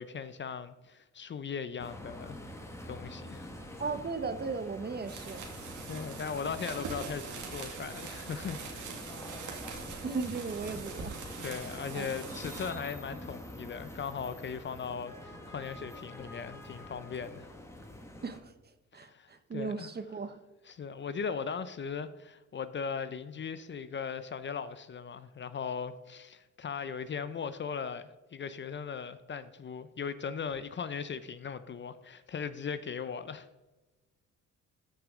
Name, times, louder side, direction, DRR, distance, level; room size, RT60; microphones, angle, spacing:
voice 1, 0.0-2.4 2.9-3.5 5.9-8.9 11.4-17.5 18.9-19.9 20.7-33.5, left 6 dB, 40° left, 0.6 m, -38 dB
sound 1, 1.8-18.4, left 1 dB, 10° left, 1.6 m, -46 dB
voice 2, 3.8-5.5 9.8-11.4 11.9-12.2 18.2-18.5 18.9-20.4, right 4 dB, 35° right, 1.0 m, -37 dB
sound 2, 5.0-12.7, right 5 dB, 80° right, 2.2 m, -43 dB
13.5 x 6.1 x 3.7 m
cardioid pair, 90°, 30 cm